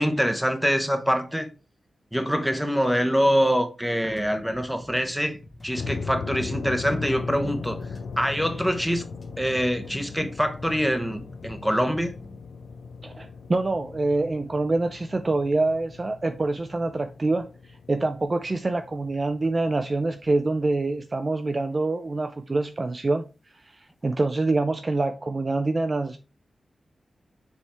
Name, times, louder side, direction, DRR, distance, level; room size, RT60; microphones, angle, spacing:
voice 1, 0.0-1.5 2.1-5.4 5.6-7.8 8.2-9.0 9.4-12.1, equal, ahead, 0.9 m, -24 dB
sound 1, 4.0-12.4, left 1 dB, 35° left, 1.7 m, -48 dB
sound 2, 5.7-21.0, left 5 dB, 90° left, 0.7 m, -38 dB
voice 2, 13.0-17.5 17.9-23.3 24.0-26.2, right 2 dB, 30° right, 0.4 m, -25 dB
7.0 x 3.5 x 4.3 m
wide cardioid pair, 160°, 0 cm